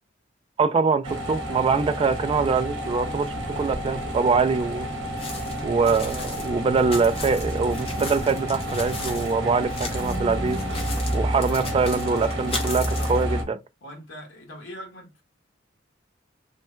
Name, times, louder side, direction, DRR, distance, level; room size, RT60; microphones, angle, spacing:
voice 1, 0.6-4.9 5.6-10.6 11.1-13.6, right 4 dB, 30° right, 0.3 m, -23 dB
sound 1, 1.0-13.4, equal, 65° right, 0.9 m, -30 dB
Aircraft / Engine, 3.3-8.3, left 1 dB, ahead, 0.7 m, -44 dB
sound 2, 5.2-9.3 9.6-10.2 10.5-13.2, left 3 dB, 30° left, 0.8 m, -36 dB
voice 2, 13.8-15.2, equal, 70° left, 1.3 m, -41 dB
3.2 x 2.1 x 3.0 m
head